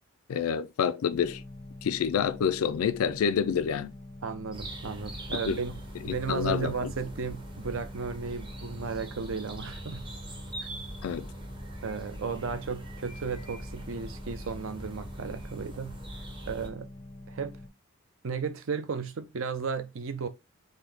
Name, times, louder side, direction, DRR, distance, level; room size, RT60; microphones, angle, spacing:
voice 1, 0.3-1.4 1.8-3.9 5.5-5.6 6.1-6.9 11.0-11.3, left 7 dB, 85° left, 0.4 m, -28 dB
sound 1, 1.1-17.7, left 1 dB, 20° left, 0.4 m, -46 dB
voice 2, 4.2-5.7 6.0-10.1 11.8-15.9 16.5-16.9 17.3-17.6 18.2-20.3, right 5 dB, 70° right, 0.5 m, -34 dB
sound 2, 4.5-16.7, right 1 dB, 20° right, 0.6 m, -42 dB
3.9 x 2.7 x 3.4 m
head